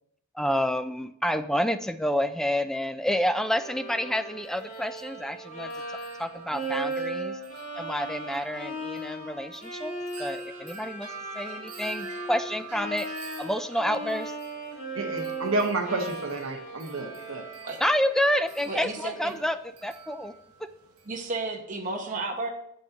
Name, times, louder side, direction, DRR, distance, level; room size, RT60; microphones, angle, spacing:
voice 1, 0.3-5.7 6.2-7.4 7.8-9.9 10.2-11.1 11.3-13.1 13.4-14.3 17.8-19.6 19.8-20.3, equal, ahead, 9 dB, 0.3 m, -28 dB
Bowed string instrument, 3.4-19.5, right 2 dB, 35° left, 2.3 m, -38 dB
Wind chime, 4.4-21.3, right 5 dB, 80° right, 0.9 m, -46 dB
voice 2, 14.9-17.4, right 2 dB, 65° right, 4 dB, 1.2 m, -30 dB
voice 3, 18.7-19.4 21.1-22.5, right 3 dB, 35° right, 2 dB, 1.0 m, -33 dB
8.4 x 7.9 x 2.9 m, 0.73 s
head